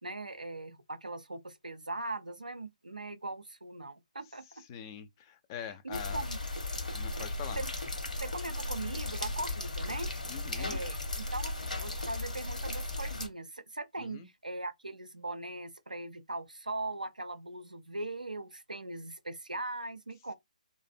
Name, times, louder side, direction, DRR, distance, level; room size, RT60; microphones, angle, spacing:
voice 1, 0.0-4.4 5.6-6.4 7.6-7.7 8.2-10.1 10.6-20.3, right 2 dB, 90° right, 0.5 m, -40 dB
voice 2, 4.7-6.3 6.9-7.6 10.3-10.8 14.0-14.3, left 8 dB, 25° left, 0.3 m, -43 dB
sound 1, 5.9-13.3, left 2 dB, 80° left, 0.8 m, -36 dB
2.5 x 2.0 x 2.5 m
figure-of-eight pair, 140°, 4 cm